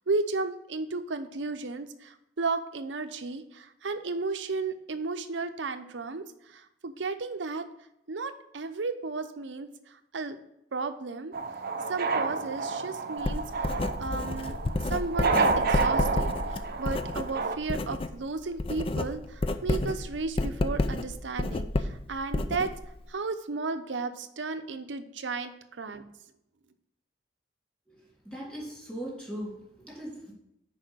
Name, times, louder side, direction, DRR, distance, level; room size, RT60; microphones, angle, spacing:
voice 1, 0.1-6.2 6.8-7.6 8.1-9.7 10.1-10.4 10.7-11.3 11.9-13.4 14.0-14.6 14.9-16.3 16.8-19.2 19.6-22.7 23.1-25.5 25.8-26.0, right 3 dB, 90° right, 9 dB, 0.7 m, -33 dB
sound 1, 11.3-17.6, right 4 dB, 55° right, 0.6 m, -30 dB
Writing, 13.2-18.2 18.4-23.1, left 2 dB, 30° left, 0.4 m, -30 dB
voice 2, 27.9-30.3, equal, 5° left, -5 dB, 3.2 m, -40 dB
6.6 x 4.9 x 6.1 m, 0.82 s
head